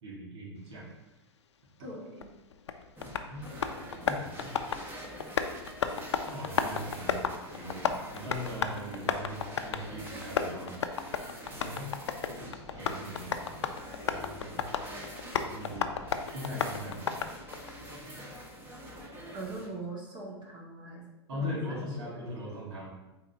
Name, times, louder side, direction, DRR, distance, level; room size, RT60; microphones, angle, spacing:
voice 1, 0.0-0.9 3.3-3.5 3.8-4.5 6.3-7.2 7.5-10.8 11.5-11.9 12.3-13.8 14.1-14.6 15.4-15.9 16.3-17.0 18.0-18.2 21.3-22.9, left 1 dB, 75° right, -3 dB, 1.9 m, -40 dB
voice 2, 1.8-2.3 19.3-21.1 21.3-22.5, right 3 dB, 35° right, -2 dB, 2.1 m, -42 dB
Tap, 2.2-17.7, left 6 dB, 90° left, 0.5 m, -35 dB
sound 1, 3.0-19.7, equal, 15° right, 1.5 m, -46 dB
8.8 x 4.0 x 2.8 m, 1.0 s
hypercardioid pair, 110°, 14 cm